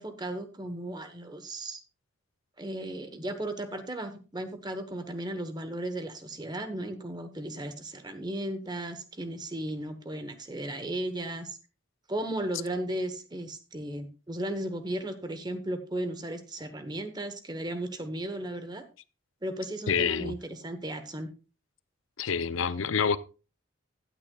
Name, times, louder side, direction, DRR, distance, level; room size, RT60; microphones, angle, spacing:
voice 1, 0.0-1.8 2.6-11.6 12.1-18.8 19.4-21.3, right 1 dB, 20° right, 1.0 m, -35 dB
voice 2, 19.9-20.4 22.2-23.2, left 6 dB, 80° left, 0.6 m, -27 dB
15.5 x 9.2 x 2.3 m
head